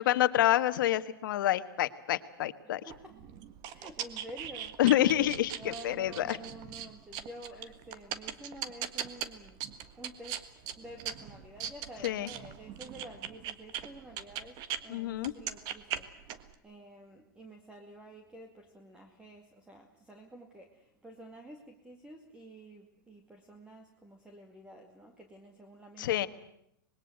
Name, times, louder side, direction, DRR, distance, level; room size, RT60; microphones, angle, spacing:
voice 1, 0.0-2.8 4.8-6.4 12.0-12.3 14.9-15.3 26.0-26.3, left 13 dB, 65° left, 12 dB, 1.5 m, -27 dB
voice 2, 2.9-3.2 3.7-4.7 5.6-9.6 10.0-10.4 10.8-16.1 16.6-26.3, right 1 dB, 10° right, 4 dB, 2.3 m, -50 dB
sound 1, 2.9-14.8 15.2-16.5, right 10 dB, 35° right, 1.6 m, -40 dB
25.5 x 21.0 x 7.9 m, 0.75 s
hypercardioid pair, 145°, 12 cm